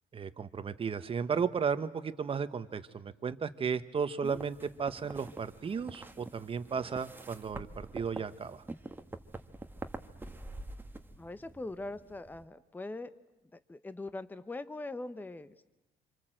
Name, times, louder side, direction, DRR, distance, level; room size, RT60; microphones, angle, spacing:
voice 1, 0.1-8.6, right 6 dB, 35° right, 12 dB, 1.3 m, -34 dB
sound 1, 4.2-12.4, right 2 dB, 10° right, 1.4 m, -46 dB
voice 2, 11.2-13.1 13.5-15.7, left 2 dB, 10° left, 12 dB, 0.9 m, -42 dB
26.5 x 26.5 x 7.8 m, 1.0 s
cardioid pair, 110°, 17 cm